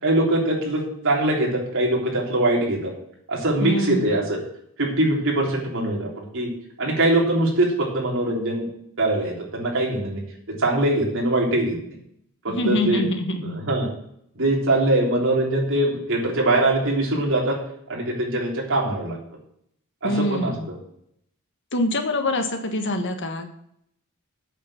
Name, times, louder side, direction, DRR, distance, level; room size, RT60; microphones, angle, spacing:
voice 1, 0.0-2.9 3.3-4.4 4.8-6.5 6.8-8.7 9.0-10.2 10.6-12.0 12.4-13.0 13.4-13.9 14.4-17.6 17.9-19.2 20.0-20.5, right 1 dB, 65° right, -1 dB, 3.4 m, -22 dB
voice 2, 3.6-4.1 12.5-13.6 20.0-20.7 21.7-23.5, left 1 dB, 55° left, 6 dB, 1.5 m, -25 dB
8.5 x 7.0 x 7.4 m, 0.70 s
head